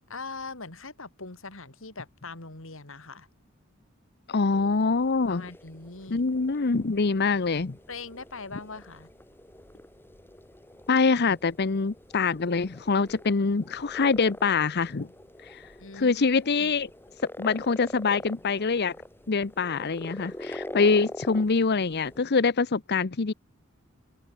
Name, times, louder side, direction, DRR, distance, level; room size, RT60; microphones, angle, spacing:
voice 1, 0.1-3.3 5.3-6.3 7.9-9.1 15.8-16.7, left 3 dB, 65° left, 3.3 m, -41 dB
voice 2, 4.3-5.4 6.1-7.8 10.9-15.1 15.4-15.7 15.9-16.9 17.2-18.9 19.3-23.3, left 4 dB, 50° left, 0.8 m, -25 dB
sound 1, 4.5-22.2, left 1 dB, 10° left, 6.1 m, -45 dB
open air
head